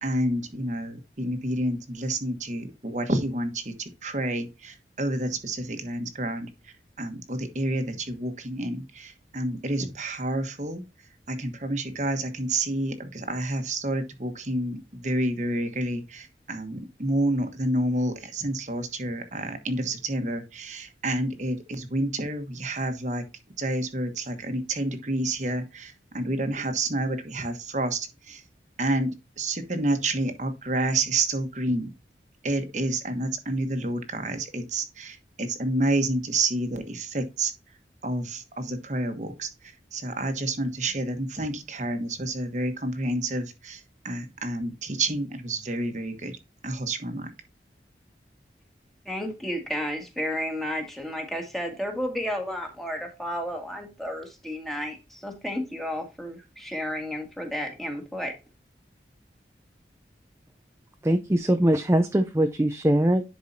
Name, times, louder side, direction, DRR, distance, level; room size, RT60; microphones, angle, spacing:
voice 1, 0.0-10.8 11.3-23.2 23.6-28.4 28.8-31.9 32.4-37.5 38.0-46.4 46.6-47.3, right 1 dB, 40° right, 7 dB, 1.2 m, -29 dB
voice 2, 49.0-58.3, equal, ahead, 3 dB, 1.8 m, -32 dB
voice 3, 61.0-63.2, right 1 dB, 15° right, 6 dB, 0.5 m, -22 dB
10.5 x 4.7 x 2.7 m, 0.26 s
head